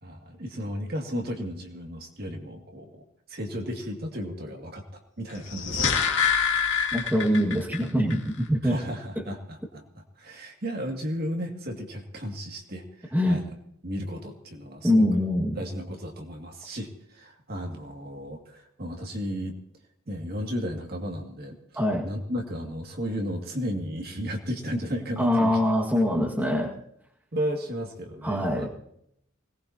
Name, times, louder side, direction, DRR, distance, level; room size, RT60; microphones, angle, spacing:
voice 1, 0.0-2.9 3.3-6.0 8.6-13.5 13.8-15.1 15.6-19.6 20.1-21.6 22.0-25.6 27.3-28.7, equal, 45° right, 2 dB, 2.1 m, -34 dB
sound 1, 5.4-7.8 8.1-8.2, left 7 dB, 60° left, 2.1 m, -25 dB
voice 2, 6.9-8.8 13.1-13.4 14.8-15.6 21.8-22.1 25.2-26.7 28.2-28.7, left 1 dB, 10° right, -2 dB, 1.7 m, -23 dB
24.0 x 18.5 x 2.8 m, 0.71 s
head